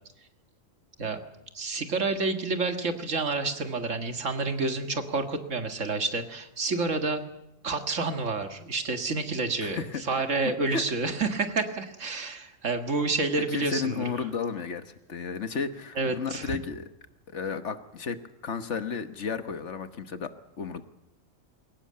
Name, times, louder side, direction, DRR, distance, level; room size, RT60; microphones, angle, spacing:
voice 1, 1.5-7.2 7.6-14.0 16.0-16.6, right 3 dB, 70° right, 7 dB, 2.1 m, -29 dB
voice 2, 9.6-10.0 10.4-10.8 13.5-16.9 17.3-20.8, left 5 dB, 60° left, 10 dB, 1.5 m, -33 dB
21.5 x 18.0 x 8.7 m, 0.87 s
omnidirectional pair, 1.3 m